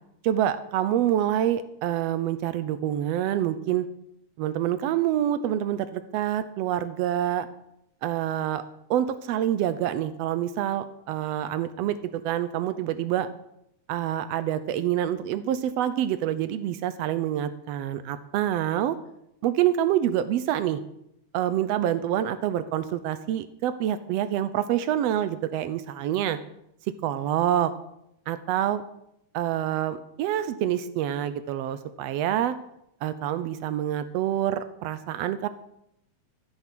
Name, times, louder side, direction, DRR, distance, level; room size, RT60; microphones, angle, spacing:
voice 1, 0.2-3.9 4.4-7.5 8.0-8.6 8.9-13.3 13.9-19.0 19.4-20.8 21.3-26.4 27.0-27.7 28.3-28.8 29.3-32.5 33.0-35.5, right 11 dB, 80° right, 13 dB, 1.5 m, -26 dB
14.5 x 7.0 x 6.0 m, 0.79 s
omnidirectional pair, 3.5 m